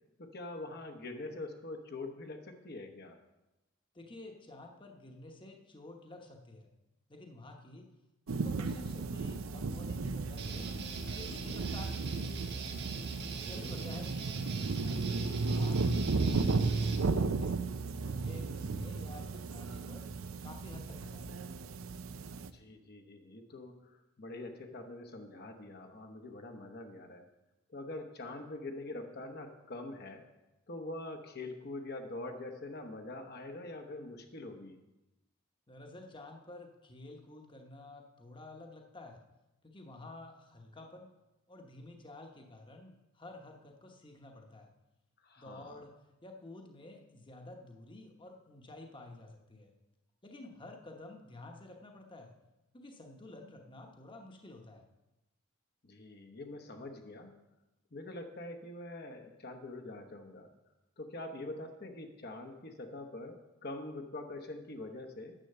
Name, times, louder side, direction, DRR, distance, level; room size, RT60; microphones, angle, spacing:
voice 1, 0.2-3.2 13.3-13.6 22.5-27.3 27.7-30.2 30.7-34.8 45.2-45.8 55.8-57.3 57.9-60.5 61.0-65.3, left 2 dB, 50° left, 4 dB, 1.0 m, -44 dB
voice 2, 3.9-6.7 7.1-7.9 8.3-10.7 11.1-12.6 13.5-17.6 18.0-20.1 20.4-21.5 35.7-39.2 39.6-41.1 41.5-44.7 45.4-45.9 46.2-49.7 50.2-52.3 52.7-54.8, left 2 dB, 25° left, 3 dB, 1.0 m, -51 dB
sound 1, 8.3-22.5, right 3 dB, 75° right, 0.6 m, -34 dB
Guitar, 10.4-17.1, right 4 dB, 55° right, 1.3 m, -44 dB
10.0 x 7.7 x 6.7 m, 1.0 s
head